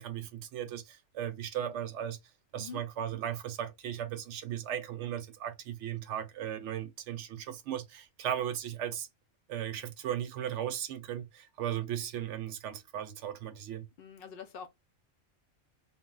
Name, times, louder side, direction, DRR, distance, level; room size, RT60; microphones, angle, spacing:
voice 1, 0.0-2.2 2.5-9.1 9.5-13.8, right 10 dB, 85° right, 0.9 m, -36 dB
voice 2, 14.0-14.7, left 7 dB, 60° left, 0.7 m, -45 dB
2.1 x 2.0 x 3.7 m
omnidirectional pair, 1.2 m